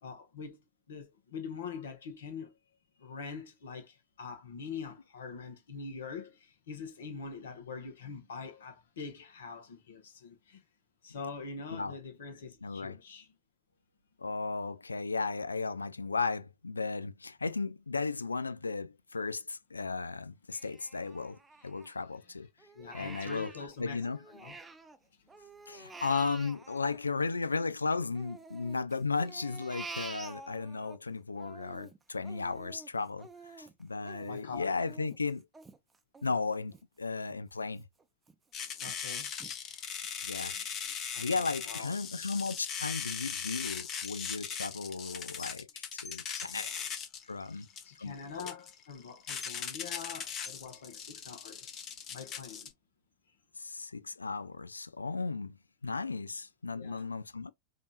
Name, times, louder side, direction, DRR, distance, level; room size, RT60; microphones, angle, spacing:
voice 1, 0.0-2.6 3.0-10.6 11.0-13.3 22.7-24.6 34.3-34.8 38.8-39.3 40.4-41.9 47.5-51.8 52.1-52.7 56.7-57.1, left 5 dB, 65° left, 1.3 m, -44 dB
voice 2, 12.6-13.0 14.2-22.5 22.9-24.2 25.7-35.5 36.2-37.8 40.2-40.6 41.2-46.8 47.3-47.7 48.0-48.4 53.6-55.5 55.8-57.5, left 4 dB, 80° left, 0.3 m, -35 dB
Crying sobbing, 20.5-22.2 22.6-25.0 25.3-27.7 28.1-31.0 31.3-36.8 37.2-37.4 37.8-38.3 38.8-38.9 39.4-39.5, right 3 dB, 15° right, 0.7 m, -49 dB
sound 1, 38.5-52.7, left 7 dB, 30° left, 1.0 m, -39 dB
5.2 x 2.7 x 2.4 m
figure-of-eight pair, 90°, 0 cm